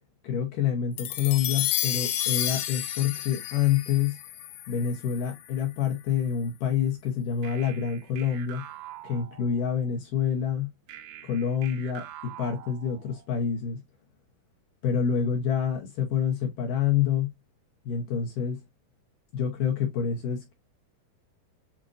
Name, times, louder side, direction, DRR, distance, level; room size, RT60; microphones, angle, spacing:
voice 1, 0.2-4.2 4.7-8.6 9.0-10.7 11.2-13.8 14.8-17.3 17.9-18.6 19.3-20.5, left 8 dB, 70° left, 2.1 m, -27 dB
sound 1, 1.0-5.5, left 13 dB, 90° left, 2.0 m, -31 dB
sound 2, 7.4-9.9 10.9-13.4, right 12 dB, 85° right, 3.0 m, -45 dB
7.3 x 2.6 x 2.5 m
omnidirectional pair, 4.8 m